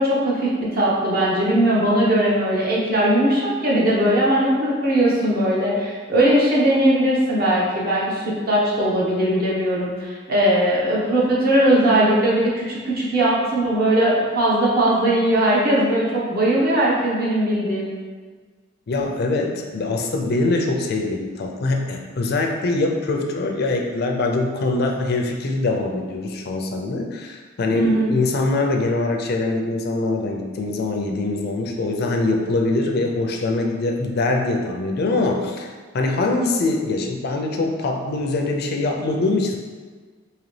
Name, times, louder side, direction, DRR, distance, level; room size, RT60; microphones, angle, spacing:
voice 1, 0.0-17.9 27.7-28.2, right 1 dB, 50° right, -6 dB, 1.0 m, -19 dB
voice 2, 18.9-39.6, left 2 dB, 55° left, 2 dB, 0.4 m, -23 dB
3.9 x 2.8 x 3.2 m, 1.5 s
head